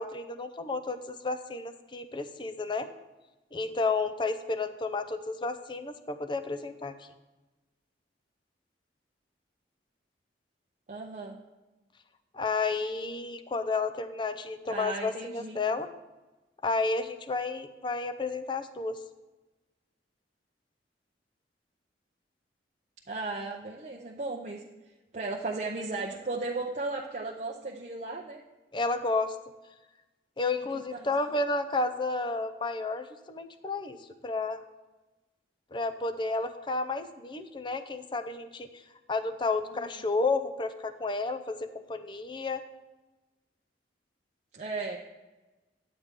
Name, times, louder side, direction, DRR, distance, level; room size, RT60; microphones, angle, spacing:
voice 1, 0.0-2.9 3.5-6.9 12.3-15.9 16.6-19.0 28.7-29.3 30.4-34.0 34.2-34.6 35.7-38.7 39.1-42.6, left 3 dB, 25° left, 9 dB, 0.5 m, -31 dB
voice 2, 10.9-11.4 14.7-15.6 23.1-24.6 25.1-28.4 30.9-31.1 39.7-40.1 44.5-45.0, right 3 dB, 40° right, -1 dB, 0.6 m, -35 dB
10.5 x 8.1 x 3.6 m, 1.1 s
head